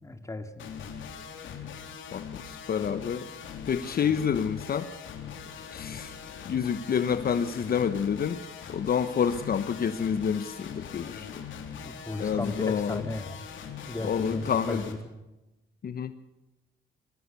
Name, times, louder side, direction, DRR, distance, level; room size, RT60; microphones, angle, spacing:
voice 1, 0.0-0.7 11.8-13.4 13.9-15.0, left 2 dB, 15° left, 7 dB, 2.5 m, -35 dB
sound 1, 0.6-14.9, left 7 dB, 75° left, 3.6 m, -41 dB
voice 2, 2.1-3.2 3.7-4.9 5.7-6.2 6.4-8.4 8.7-11.4 12.2-13.0 14.0-14.8 15.8-16.1, left 7 dB, 50° left, 11 dB, 1.1 m, -28 dB
22.0 x 17.0 x 7.0 m, 0.99 s
cardioid pair, 90°, 20 cm